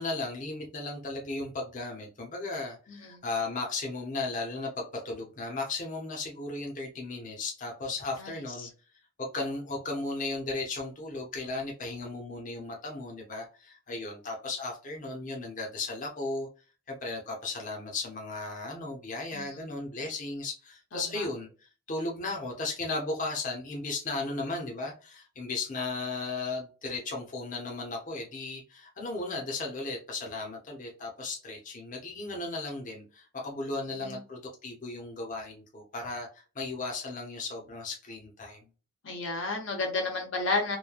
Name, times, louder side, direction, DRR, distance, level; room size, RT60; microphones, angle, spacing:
voice 1, 0.0-8.7 9.2-16.5 16.9-38.6, left 3 dB, 40° left, 0.7 m, -36 dB
voice 2, 2.9-3.2 8.2-8.3 8.6-8.7 19.3-19.6 20.9-21.3 33.7-34.2 39.0-40.8, left 3 dB, 75° left, 0.8 m, -32 dB
3.0 x 2.1 x 2.2 m
head